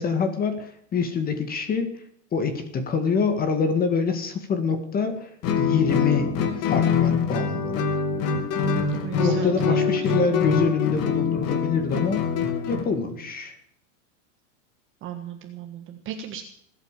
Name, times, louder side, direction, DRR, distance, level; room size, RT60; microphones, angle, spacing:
voice 1, 0.0-2.0 2.3-5.3 5.6-6.3 6.6-7.8 9.2-12.2 12.7-13.6, left 5 dB, 20° left, 8 dB, 2.0 m, -25 dB
Guitar, 5.4-12.9, left 5 dB, 40° left, 2.6 m, -24 dB
voice 2, 8.9-10.1 15.0-16.4, right 9 dB, 30° right, 5 dB, 1.6 m, -36 dB
19.5 x 8.7 x 7.4 m, 0.68 s
supercardioid pair, 145°, 40 cm